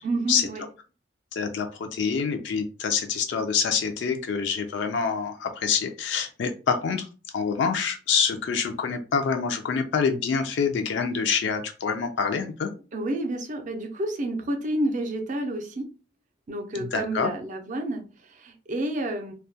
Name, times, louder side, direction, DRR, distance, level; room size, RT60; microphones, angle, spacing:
voice 1, 0.0-0.6 12.9-15.9 16.5-19.3, right 1 dB, 40° right, 4 dB, 0.5 m, -30 dB
voice 2, 1.3-7.1 7.3-12.7 16.7-17.3, left 6 dB, 65° left, 5 dB, 0.3 m, -26 dB
2.2 x 2.1 x 2.6 m, 0.35 s
head